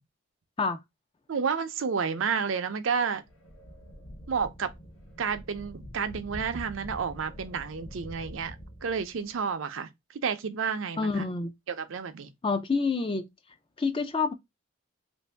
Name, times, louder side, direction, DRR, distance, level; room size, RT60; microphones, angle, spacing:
voice 1, 1.3-3.2 4.3-4.7 5.2-8.6 8.8-11.2 11.7-12.3, right 6 dB, 75° right, 0.5 m, -30 dB
sound 1, 3.2-9.4, equal, 90° left, 1.0 m, -45 dB
voice 2, 11.0-11.5 12.4-13.3 13.8-14.3, left 4 dB, 25° left, 0.3 m, -27 dB
2.9 x 2.6 x 3.2 m
head